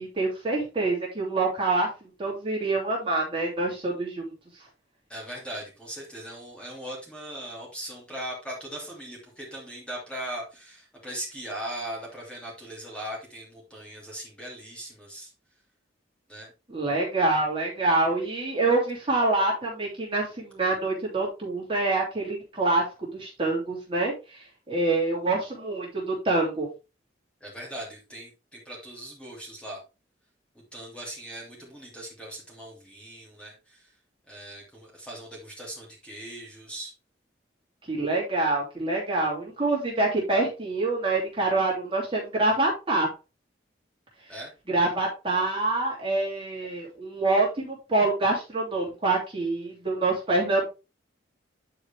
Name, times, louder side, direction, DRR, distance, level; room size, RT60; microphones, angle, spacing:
voice 1, 0.0-1.9 2.2-4.3 16.7-22.8 23.1-24.1 24.7-26.7 37.9-43.1 44.7-50.7, right 2 dB, 30° right, -3 dB, 2.8 m, -26 dB
voice 2, 5.1-15.3 16.3-16.5 27.4-29.8 30.7-33.9 34.3-36.9 44.3-44.5, right 1 dB, 5° left, -3 dB, 2.8 m, -39 dB
9.8 x 4.9 x 3.4 m, 0.28 s
head